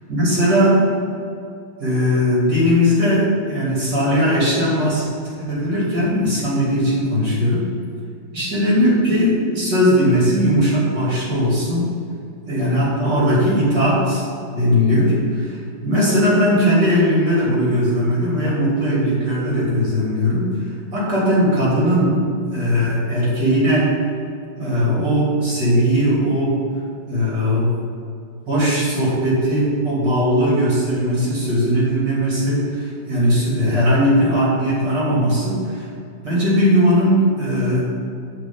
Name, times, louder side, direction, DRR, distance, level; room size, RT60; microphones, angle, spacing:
voice 1, 0.1-0.8 1.8-5.1 5.4-7.6 8.3-11.9 12.5-20.5 20.9-22.2 22.5-23.9 24.6-26.6 27.1-27.7 28.5-35.9 36.2-37.8, equal, 55° right, -7 dB, 3.5 m, -18 dB
9.3 x 5.1 x 7.2 m, 2.4 s
omnidirectional pair, 2.2 m